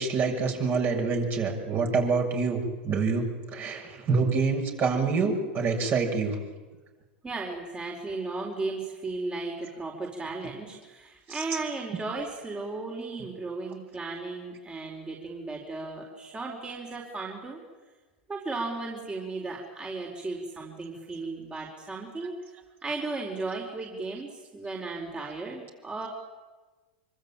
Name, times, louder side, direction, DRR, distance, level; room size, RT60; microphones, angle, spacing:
voice 1, 0.0-6.4 11.3-11.4, right 4 dB, 40° right, 2 dB, 6.7 m, -26 dB
voice 2, 7.2-17.6 18.3-22.4 22.8-26.1, right 3 dB, 20° right, -1 dB, 4.5 m, -35 dB
25.0 x 25.0 x 9.1 m, 1.3 s
hypercardioid pair, 105°, 6 cm